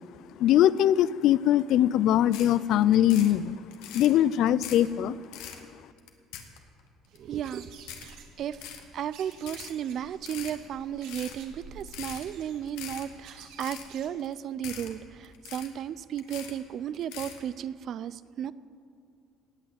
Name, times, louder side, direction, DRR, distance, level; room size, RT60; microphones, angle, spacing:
voice 1, 0.4-3.6 3.9-5.2, left 12 dB, 65° left, 19 dB, 0.4 m, -22 dB
sound 1, 2.3-2.5 2.8-3.3 3.7-4.1 4.5-4.9 5.2-5.6 6.0-6.8 7.2-7.3 7.8-8.1 8.5-8.8 9.3-9.7 10.1-10.6 11.0-11.4 11.8-12.2 12.6-13.0 13.4-13.9 14.2-14.3 14.6-14.9 15.2-15.8 16.2-16.6 16.9-17.4, left 9 dB, 85° left, 1.5 m, -42 dB
sound 2, 7.1-14.1, right 5 dB, 80° right, 1.9 m, -51 dB
voice 2, 7.2-8.1 8.4-18.5, right 9 dB, 55° right, 17 dB, 0.5 m, -34 dB
17.5 x 6.3 x 9.4 m, 2.5 s
supercardioid pair, 95°, 0 cm